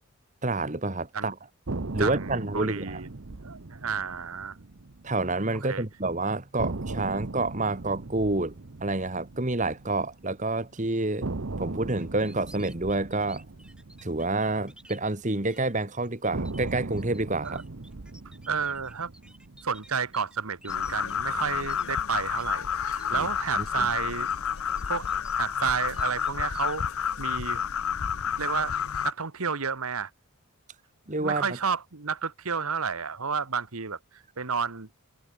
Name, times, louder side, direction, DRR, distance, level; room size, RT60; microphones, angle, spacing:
voice 1, 0.4-1.4 1.9-3.0 5.0-8.5 8.8-11.3 11.6-13.4 14.0-17.6 23.1-23.3 23.5-23.9 31.1-31.5, right 2 dB, 35° right, 1.6 m, -28 dB
sound 1, 1.7-5.7 6.0-6.1 6.6-10.7 11.2-15.6 16.3-20.7, right 2 dB, 60° right, 0.9 m, -38 dB
voice 2, 2.0-3.1 3.3-4.6 5.7-5.8 17.4-17.6 18.5-19.1 19.6-24.3 24.9-25.1 25.4-26.9 27.2-27.7 28.4-28.7 29.0-30.1 31.2-34.9, right 6 dB, 80° right, 1.4 m, -31 dB
sound 2, 12.0-15.0 15.5-15.7 16.0-22.4 22.7-23.2 23.6-24.0 24.5-25.7 25.9-26.9, right 1 dB, 5° right, 4.3 m, -54 dB
sound 3, 20.7-29.1, left 7 dB, 75° left, 0.7 m, -30 dB
head